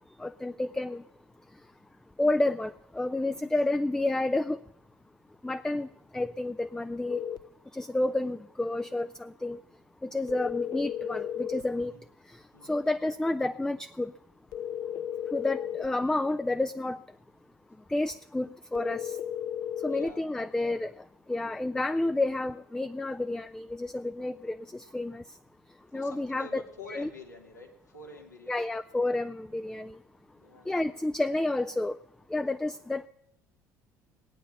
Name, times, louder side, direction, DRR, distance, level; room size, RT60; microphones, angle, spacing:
voice 1, 0.2-1.0 2.2-4.6 5.4-5.9 6.1-7.2 7.7-9.6 10.0-11.9 12.6-14.1 15.3-17.0 17.9-19.2 19.8-20.9 21.3-25.2 25.9-26.6 26.9-27.1 28.5-30.0 30.7-32.0 32.3-33.1, left 2 dB, 5° left, 10 dB, 0.4 m, -30 dB
voice 2, 3.3-3.6 10.1-10.4 11.8-12.1 12.5-12.8 14.5-14.7 17.6-17.9 19.7-20.3 25.8-28.7 30.3-30.8, left 3 dB, 90° left, -1 dB, 2.2 m, -49 dB
sound 1, 7.1-7.5 10.3-11.7 14.5-15.9 18.8-20.2, left 10 dB, 45° left, 0.7 m, -34 dB
18.5 x 9.0 x 7.1 m, 0.78 s
figure-of-eight pair, 60°, 9 cm